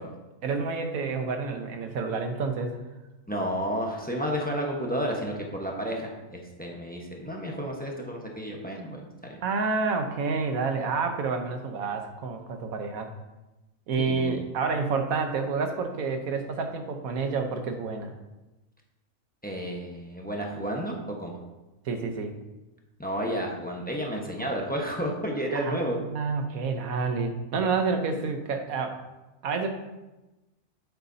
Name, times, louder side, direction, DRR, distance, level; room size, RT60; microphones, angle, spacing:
voice 1, 0.4-2.8 9.4-13.1 13.9-18.1 21.8-22.3 25.5-25.7 26.0-29.0 29.4-29.7, right 4 dB, 85° right, 5 dB, 1.4 m, -29 dB
voice 2, 3.3-9.4 14.0-14.4 19.4-21.4 23.0-26.0, equal, 5° left, -1 dB, 1.0 m, -31 dB
8.4 x 8.2 x 2.8 m, 1.1 s
omnidirectional pair, 1.4 m